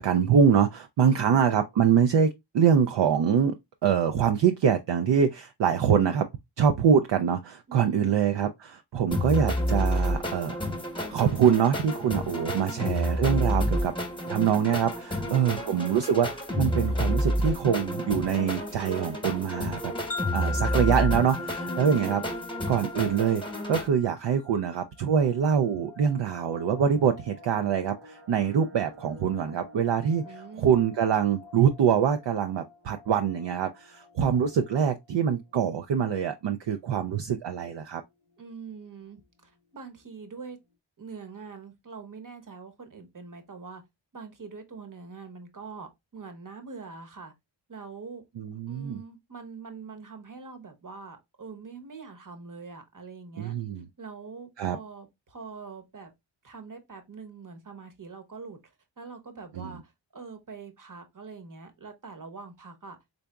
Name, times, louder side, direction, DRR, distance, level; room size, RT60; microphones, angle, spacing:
voice 1, 0.0-3.5 3.8-6.3 6.6-10.5 11.1-13.9 14.3-19.9 20.3-22.2 22.7-23.4 23.7-30.2 30.6-38.0 48.4-49.0 53.4-53.8 54.6-54.8 59.6-59.7, right 7 dB, 65° right, 0.5 m, -24 dB
voice 2, 7.7-8.2 15.2-15.9 21.6-22.3 30.2-30.7 38.4-40.6 41.0-43.8 44.1-47.3 47.7-48.2 48.7-53.6 54.0-56.1 56.4-58.6 59.0-63.0, right 5 dB, 40° right, 1.0 m, -43 dB
sound 1, 9.1-23.9, equal, 10° left, 1.0 m, -29 dB
Wind chime, 20.1-24.4, left 6 dB, 30° left, 0.6 m, -38 dB
sound 2, 25.0-35.8 36.0-36.1 36.5-36.7 37.1-37.6 38.1-38.2 38.3-38.9 39.2-39.3, left 3 dB, 85° right, 1.2 m, -51 dB
3.9 x 3.4 x 2.2 m
wide cardioid pair, 50°, 47 cm